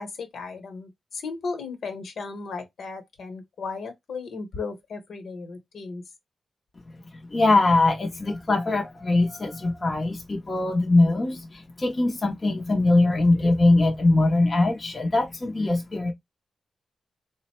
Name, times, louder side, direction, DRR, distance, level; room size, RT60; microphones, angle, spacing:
voice 1, 0.0-6.0, left 4 dB, 65° left, 1.0 m, -35 dB
voice 2, 7.1-16.1, left 2 dB, 25° left, 0.6 m, -22 dB
3.9 x 2.1 x 4.2 m
wide cardioid pair, 165°, 0 cm